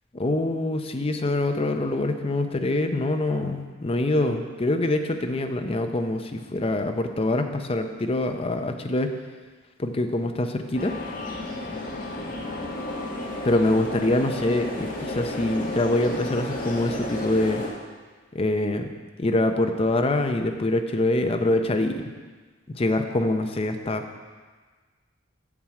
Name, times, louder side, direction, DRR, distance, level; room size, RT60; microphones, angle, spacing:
voice 1, 0.2-9.2 9.8-10.9 13.4-17.6 18.3-18.9 19.2-22.1 22.7-24.0, left 1 dB, 30° left, 6 dB, 0.6 m, -25 dB
sound 1, 10.7-17.7, left 1 dB, 45° left, 1.5 m, -32 dB
7.3 x 7.2 x 4.8 m, 1.4 s
head